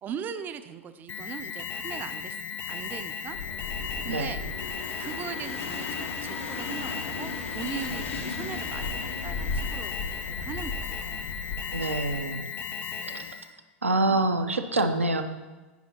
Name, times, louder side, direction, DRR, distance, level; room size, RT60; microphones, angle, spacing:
voice 1, 0.0-2.4 2.6-3.4 3.8-4.4 5.0-11.3, right 8 dB, 25° right, 11 dB, 0.4 m, -40 dB
Alarm, 1.1-13.5, left 6 dB, 30° left, 0.5 m, -36 dB
sound 1, 3.3-12.2, left 3 dB, 80° left, 0.8 m, -36 dB
voice 2, 11.7-12.4 13.0-13.3 13.8-15.2, right 2 dB, 90° right, 7 dB, 0.5 m, -26 dB
10.5 x 4.2 x 2.8 m, 1.2 s
figure-of-eight pair, 95°, 7 cm